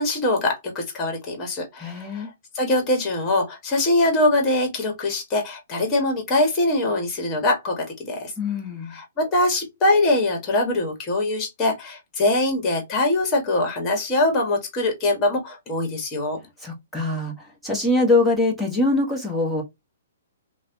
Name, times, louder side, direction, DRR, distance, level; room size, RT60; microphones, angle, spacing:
voice 1, 0.0-8.3 8.9-16.4, left 2 dB, 20° left, 1.2 m, -23 dB
voice 2, 1.8-2.3 8.4-9.0 16.6-19.6, left 2 dB, ahead, 0.9 m, -23 dB
3.1 x 2.0 x 2.6 m
hypercardioid pair, 145°, 0 cm